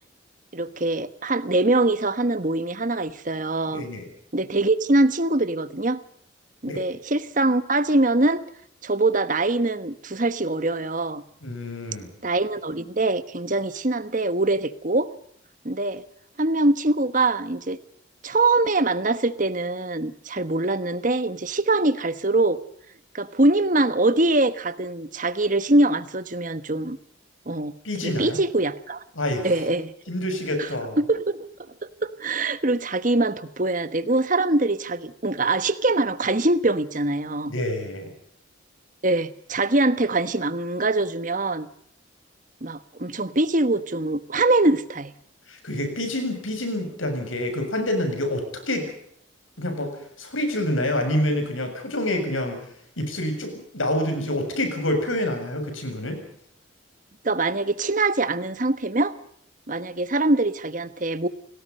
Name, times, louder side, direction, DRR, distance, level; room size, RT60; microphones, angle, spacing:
voice 1, 0.5-3.8 4.3-6.0 6.6-8.4 8.8-11.2 12.2-15.1 15.6-16.0 16.4-17.8 18.2-22.6 23.1-27.0 27.5-29.0 29.4-29.9 30.6-30.7 31.0-31.4 32.0-37.5 39.0-41.7 42.6-45.1 57.2-59.1 59.7-61.3, right 2 dB, 40° right, 13 dB, 1.2 m, -23 dB
voice 2, 3.7-4.1 6.7-6.8 11.4-12.1 27.8-28.4 29.2-29.6 30.1-31.0 37.5-38.1 45.5-48.9 49.6-52.6 53.0-56.2, left 1 dB, 80° left, 6 dB, 7.2 m, -27 dB
29.5 x 19.0 x 5.5 m, 0.68 s
head